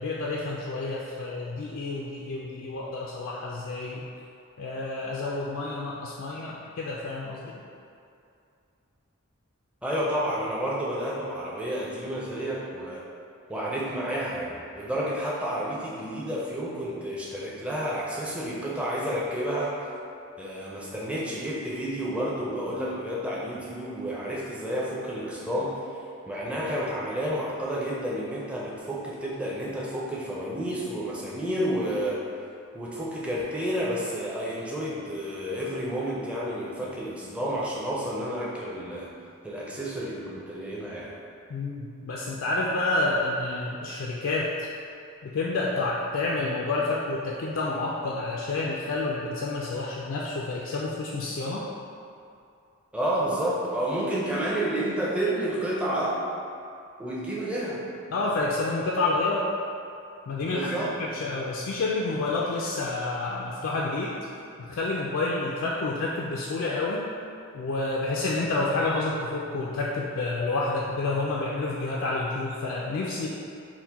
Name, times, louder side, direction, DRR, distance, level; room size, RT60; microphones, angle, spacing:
voice 1, 0.0-4.1 4.6-7.5 41.5-44.5 45.2-51.6 58.1-59.5 60.3-64.1 64.7-67.1 67.5-73.3, left 2 dB, 60° left, -4 dB, 0.3 m, -29 dB
voice 2, 9.8-13.0 13.5-19.8 20.4-25.8 26.3-32.2 32.7-39.1 39.4-41.1 52.9-56.2 57.0-57.8 60.5-60.9, right 1 dB, 5° right, -6 dB, 0.5 m, -30 dB
4.4 x 2.1 x 4.0 m, 2.5 s
head